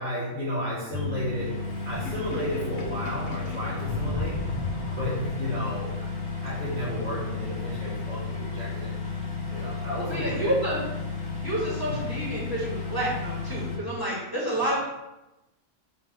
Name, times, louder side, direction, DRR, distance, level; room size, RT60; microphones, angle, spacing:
voice 1, 0.0-4.4 5.0-6.1 6.4-8.9 9.5-10.5 11.9-12.0, equal, 40° right, -13 dB, 3.3 m, -33 dB
sound 1, 0.9-13.8, left 4 dB, 50° left, 2.0 m, -33 dB
Sink (filling or washing), 1.9-5.7, left 2 dB, 85° left, 1.6 m, -35 dB
voice 2, 10.1-10.8 11.4-14.8, right 1 dB, 15° left, -8 dB, 2.2 m, -29 dB
6.9 x 3.7 x 6.2 m, 0.97 s
omnidirectional pair, 1.4 m